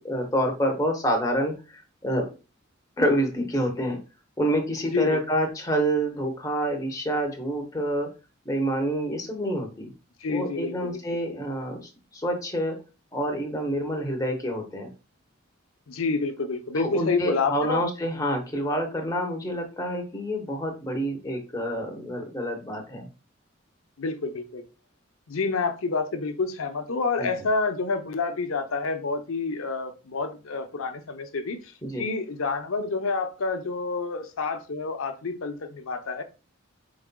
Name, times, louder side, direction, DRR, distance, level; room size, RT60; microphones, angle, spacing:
voice 1, 0.0-2.3 3.0-4.0 4.4-8.1 8.4-9.9 10.3-12.8 13.1-14.9 16.8-23.1 27.2-27.3 31.9-32.0, equal, 15° left, 2 dB, 0.9 m, -27 dB
voice 2, 4.9-5.2 10.2-11.0 15.9-17.8 24.0-24.6 25.3-36.2, left 4 dB, 90° left, 8 dB, 0.7 m, -28 dB
4.8 x 4.0 x 2.2 m, 0.31 s
head